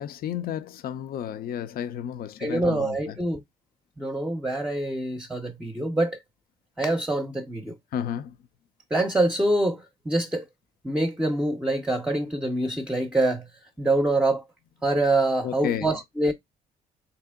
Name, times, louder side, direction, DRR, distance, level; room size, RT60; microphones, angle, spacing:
voice 1, 0.0-3.0 7.9-8.4 15.4-15.9, left 9 dB, 65° left, 0.5 m, -32 dB
voice 2, 2.4-3.4 4.0-6.2 6.8-7.8 8.9-10.5 10.8-13.5 13.8-14.4 14.8-16.3, right 2 dB, 5° right, 0.6 m, -25 dB
3.3 x 2.9 x 3.5 m
cardioid pair, 90°, 16 cm